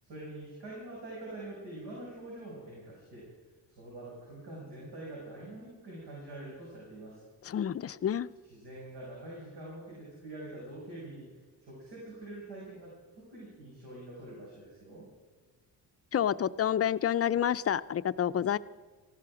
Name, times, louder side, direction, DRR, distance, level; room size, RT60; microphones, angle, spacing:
voice 1, 0.0-3.3 3.8-7.2 8.4-15.1, right 1 dB, 85° right, -5 dB, 6.4 m, -45 dB
voice 2, 7.5-8.3 16.1-18.6, left 9 dB, 35° left, 13 dB, 0.4 m, -29 dB
18.5 x 15.0 x 4.9 m, 1.4 s
cardioid pair, 125°, 41 cm